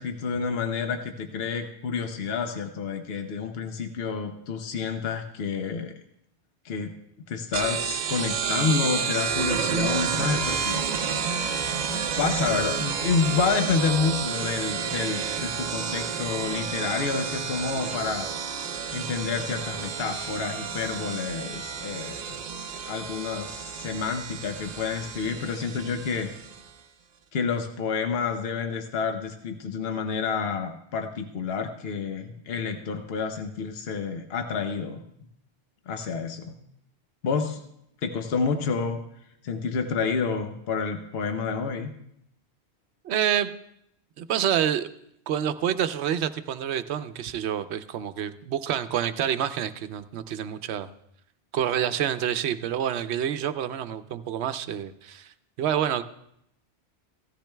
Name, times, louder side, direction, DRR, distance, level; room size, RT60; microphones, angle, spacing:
voice 1, 0.0-5.9 6.6-6.9 7.3-10.8 11.9-18.3 18.9-22.2 22.9-26.3 27.3-35.0 35.9-36.6 37.2-37.6 38.0-39.0 39.4-41.9, left 5 dB, 65° left, 5 dB, 1.0 m, -29 dB
sound 1, 7.5-26.7, right 6 dB, 50° right, 0.6 m, -30 dB
voice 2, 43.0-43.5 44.2-44.9 45.3-50.9 51.5-55.3 55.6-56.0, right 9 dB, 80° right, 11 dB, 0.9 m, -27 dB
16.5 x 13.5 x 2.2 m, 0.75 s
omnidirectional pair, 1.1 m